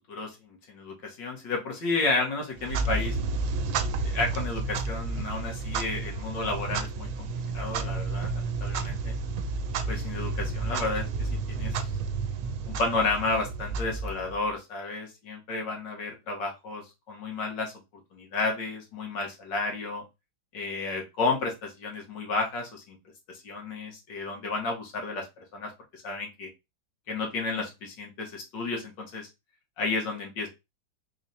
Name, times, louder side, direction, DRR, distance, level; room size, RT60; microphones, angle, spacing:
voice 1, 0.1-3.2 4.0-7.3 7.5-9.1 9.9-11.8 12.7-17.7 18.1-20.0 20.5-23.0 23.3-25.3 25.5-26.5 27.1-29.3 29.8-30.5, left 3 dB, 65° left, 0 dB, 1.8 m, -32 dB
Clock, 2.5-14.5, right 3 dB, 90° right, 1.4 m, -31 dB
4.3 x 3.1 x 2.7 m, 0.23 s
omnidirectional pair, 2.2 m